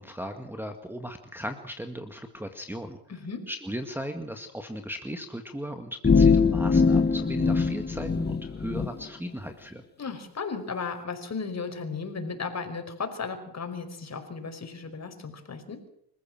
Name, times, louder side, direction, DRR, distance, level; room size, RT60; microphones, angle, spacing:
voice 1, 0.0-3.0 3.5-9.8, equal, 5° right, 4 dB, 1.9 m, -37 dB
voice 2, 3.1-3.4 10.0-15.8, left 5 dB, 40° left, 6 dB, 5.2 m, -35 dB
sound 1, 6.0-8.9, left 5 dB, 25° left, 1.5 m, -22 dB
26.5 x 15.0 x 7.6 m, 0.71 s
cardioid pair, 95°, 42 cm